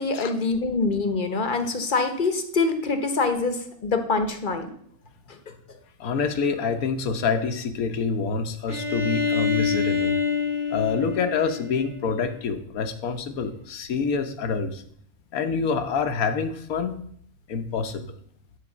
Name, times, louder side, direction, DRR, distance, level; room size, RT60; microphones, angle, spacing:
voice 1, 0.0-4.7, left 3 dB, 40° left, 7 dB, 1.1 m, -25 dB
voice 2, 6.0-10.2 10.7-14.8 15.3-16.9 17.5-18.1, left 5 dB, 75° left, 8 dB, 1.4 m, -26 dB
Bowed string instrument, 8.7-12.4, left 5 dB, 20° right, 1.1 m, -27 dB
10.0 x 4.4 x 7.1 m, 0.65 s
omnidirectional pair, 1.5 m